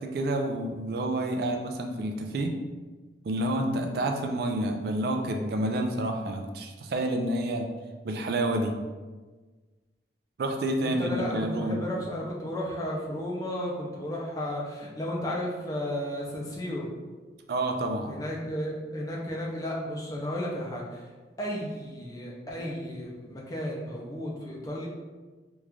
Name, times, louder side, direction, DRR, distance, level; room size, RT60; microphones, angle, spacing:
voice 1, 0.1-2.5 3.3-7.7 8.0-8.8 10.4-11.8 17.5-18.1, right 1 dB, 60° right, 3 dB, 0.3 m, -29 dB
voice 2, 11.0-16.9 18.1-21.1 21.4-24.9, equal, 20° left, -3 dB, 0.5 m, -33 dB
3.0 x 2.4 x 3.4 m, 1.3 s
head